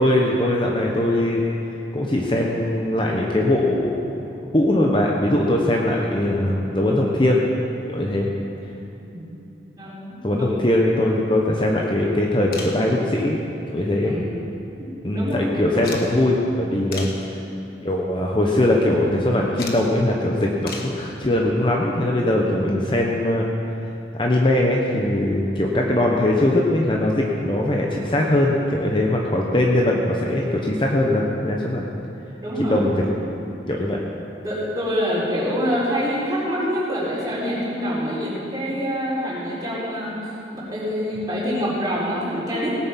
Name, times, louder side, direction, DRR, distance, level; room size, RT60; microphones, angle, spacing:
voice 1, 0.0-1.4 1.9-4.2 4.5-7.4 7.9-8.3 10.2-13.4 13.7-14.2 15.0-17.1 17.8-23.4 24.1-31.9 32.6-33.0 33.7-34.0, left 1 dB, 25° left, -1 dB, 0.9 m, -21 dB
voice 2, 9.0-9.3 9.8-10.5 11.3-11.4 14.0-14.4 14.8-15.6 32.4-32.9 34.4-42.8, equal, 20° right, -8 dB, 4.0 m, -26 dB
sound 1, 12.5-12.8 14.1-14.7 15.0-15.1 15.8-16.1 16.9-17.2 17.9-18.2 19.6-19.8 20.7-21.0 22.6-22.7 24.1-24.2 24.4-24.5, left 4 dB, 55° left, 1.4 m, -35 dB
18.0 x 8.6 x 5.9 m, 2.9 s
head